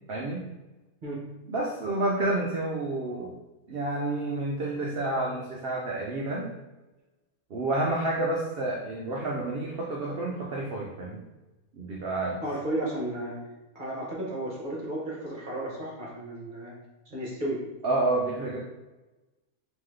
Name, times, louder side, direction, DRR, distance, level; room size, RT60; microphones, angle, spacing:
voice 1, 0.1-0.4 1.5-3.3 3.7-6.5 7.5-11.2 11.7-12.4 17.8-18.6, right 2 dB, 90° right, -2 dB, 0.5 m, -29 dB
voice 2, 12.4-13.4 13.7-16.7 17.1-17.6, right 1 dB, 35° right, -4 dB, 0.9 m, -33 dB
3.7 x 3.0 x 3.2 m, 1.1 s
omnidirectional pair, 1.7 m